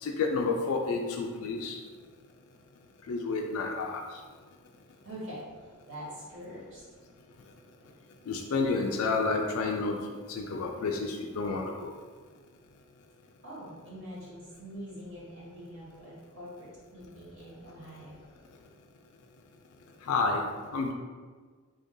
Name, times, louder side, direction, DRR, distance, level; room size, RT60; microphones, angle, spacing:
voice 1, 0.0-1.8 3.1-4.0 8.3-10.0 10.3-11.9 20.0-20.5 20.7-20.9, left 4 dB, 80° left, 1 dB, 0.4 m, -30 dB
voice 2, 5.0-6.8 7.8-7.9 13.4-18.1, equal, 55° right, -7 dB, 1.4 m, -44 dB
3.3 x 2.6 x 3.6 m, 1.5 s
head